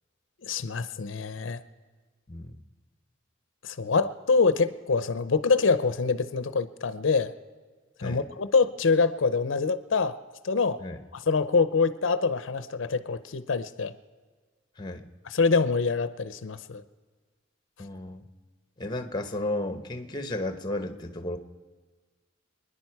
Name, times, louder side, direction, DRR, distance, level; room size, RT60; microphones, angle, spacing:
voice 1, 0.4-1.6 3.6-7.3 8.0-10.1 10.4-10.8 11.1-13.9 15.3-16.8, left 4 dB, 90° left, 13 dB, 0.6 m, -25 dB
voice 2, 14.8-15.1 17.8-18.3 18.8-21.4, left 1 dB, 20° left, 8 dB, 0.9 m, -33 dB
27.0 x 10.5 x 4.7 m, 1.4 s
head